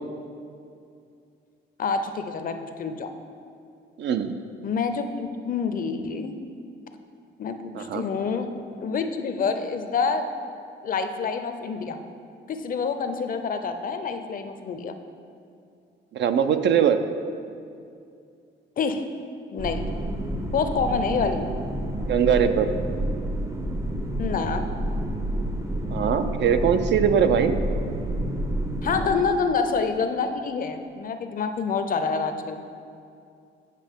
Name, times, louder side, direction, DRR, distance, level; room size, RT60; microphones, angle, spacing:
voice 1, 1.8-3.1 4.6-6.3 7.4-8.5 8.8-10.3 10.8-12.0 12.5-14.9 18.8-19.0 19.5-19.8 20.5-21.5 24.2-24.7 28.8-32.6, left 5 dB, 45° left, 8 dB, 0.5 m, -27 dB
voice 2, 4.0-4.4 7.7-8.0 16.1-17.0 22.1-22.7 25.9-27.6, right 8 dB, 65° right, 9 dB, 0.4 m, -21 dB
sound 1, 19.6-29.1, right 1 dB, 15° right, 0.5 m, -29 dB
9.2 x 5.1 x 3.6 m, 2.4 s
cardioid pair, 90°, 20 cm